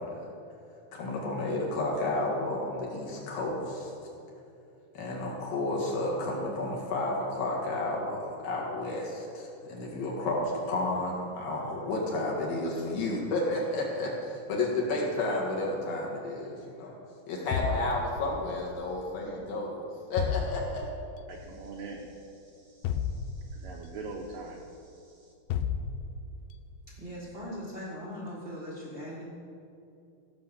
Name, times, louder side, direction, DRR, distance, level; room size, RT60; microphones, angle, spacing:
voice 1, 0.9-4.1 4.9-16.9 17.3-19.8 20.1-20.8, left 2 dB, 70° left, -3 dB, 3.4 m, -31 dB
sound 1, 17.5-18.6 20.2-21.1 22.8-23.9 25.5-26.5, left 7 dB, 90° left, 2.5 m, -32 dB
voice 2, 21.3-25.3, right 3 dB, 75° right, 0 dB, 1.8 m, -44 dB
voice 3, 27.0-29.2, equal, 40° right, -4 dB, 0.7 m, -40 dB
15.5 x 5.6 x 7.0 m, 2.7 s
omnidirectional pair, 4.3 m